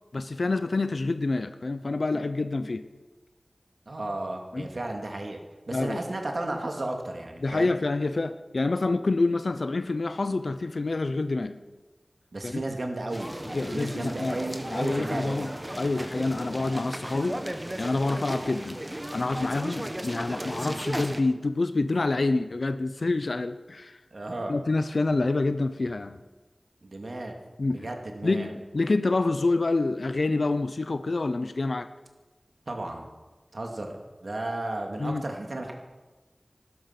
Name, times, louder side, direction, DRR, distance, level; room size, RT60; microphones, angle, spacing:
voice 1, 0.1-2.9 4.5-4.7 5.7-6.0 7.4-11.6 12.4-12.6 13.5-14.4 14.7-15.5 15.8-17.4 17.8-18.8 19.1-24.0 24.5-26.2 27.6-27.9 28.2-31.9 35.0-35.2, left 3 dB, 80° left, 11 dB, 0.7 m, -27 dB
voice 2, 3.9-5.4 5.7-7.8 12.3-15.4 24.1-24.6 26.8-27.3 27.7-28.5 32.7-33.1 33.5-35.7, right 2 dB, 75° right, 2 dB, 2.5 m, -34 dB
sound 1, 13.1-21.2, right 1 dB, 20° right, 1.3 m, -35 dB
16.5 x 12.5 x 6.0 m, 1.2 s
wide cardioid pair, 60°, 0 cm